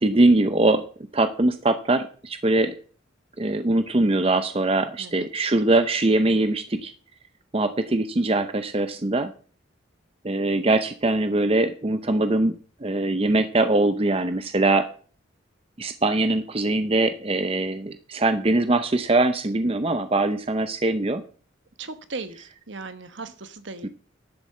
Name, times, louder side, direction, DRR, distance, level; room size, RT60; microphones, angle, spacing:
voice 1, 0.0-0.9 1.1-2.7 3.4-6.9 7.5-9.3 10.2-14.9 15.8-21.2 23.8-23.9, right 2 dB, 30° right, 9 dB, 0.7 m, -22 dB
voice 2, 21.8-23.9, right 3 dB, 65° right, 10 dB, 1.2 m, -37 dB
11.5 x 7.0 x 7.5 m, 0.43 s
head